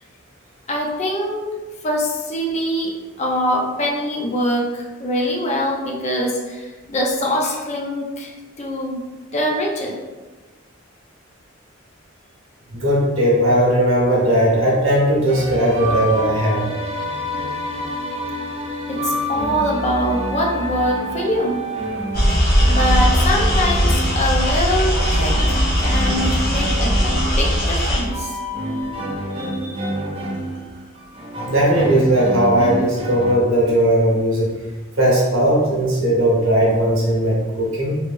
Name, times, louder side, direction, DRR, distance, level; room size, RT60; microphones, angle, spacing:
voice 1, 0.7-1.5 1.8-9.0 9.3-10.0 18.9-21.6 22.7-27.0 27.4-28.4, equal, 35° left, -1 dB, 0.5 m, -23 dB
voice 2, 12.7-16.7 29.4-29.9 31.5-34.6 35.0-37.9, right 1 dB, 75° right, -5 dB, 1.1 m, -18 dB
sound 1, 15.3-33.3, equal, 30° right, 0.4 m, -28 dB
sound 2, 22.1-28.0, equal, 50° left, 0.9 m, -18 dB
3.1 x 3.0 x 2.5 m, 1.2 s
head